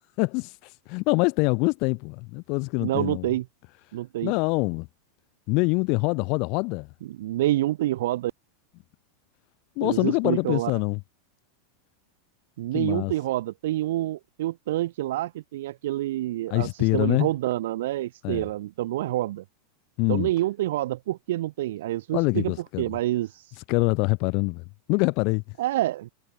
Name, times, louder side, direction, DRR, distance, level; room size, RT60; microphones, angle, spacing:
voice 1, 0.2-3.3 4.2-4.9 5.5-6.9 9.8-11.0 12.7-13.1 16.5-17.3 18.2-18.4 20.0-20.3 22.1-22.8 23.5-24.6 24.9-25.6, left 30 dB, 55° left, 5.6 m, -25 dB
voice 2, 2.8-3.4 3.9-4.3 7.1-8.3 9.8-10.7 12.6-16.7 16.9-19.4 20.1-23.3 25.6-26.1, right 15 dB, 75° right, 1.2 m, -27 dB
hypercardioid pair, 115°, 0 cm